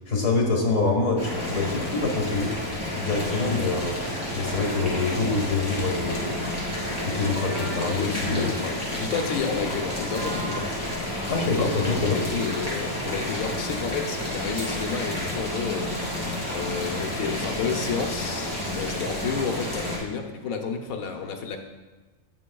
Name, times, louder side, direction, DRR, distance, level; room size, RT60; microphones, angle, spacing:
voice 1, 0.1-2.5 2.9-4.0 4.3-8.5 11.3-12.2, left 3 dB, 65° left, 1 dB, 1.9 m, -26 dB
Boiling, 1.2-20.0, left 1 dB, 10° right, 3.0 m, -30 dB
voice 2, 4.3-5.0 7.8-10.7 11.4-15.9 16.5-21.6, left 6 dB, 85° left, 4 dB, 1.3 m, -31 dB
Livestock farm animals working animals, 6.9-8.0 9.3-10.8, right 1 dB, 50° right, 2.8 m, -39 dB
17.5 x 6.0 x 2.3 m, 1.2 s
omnidirectional pair, 1.4 m